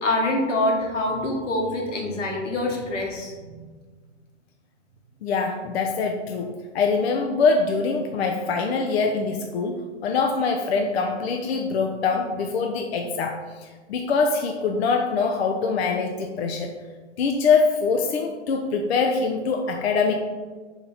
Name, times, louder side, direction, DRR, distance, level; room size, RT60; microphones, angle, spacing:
voice 1, 0.0-3.7, left 1 dB, 90° left, -1 dB, 1.3 m, -25 dB
voice 2, 5.2-16.7 17.2-20.1, left 4 dB, 60° left, 3 dB, 0.5 m, -24 dB
4.4 x 2.8 x 3.8 m, 1.4 s
hypercardioid pair, 135°, 36 cm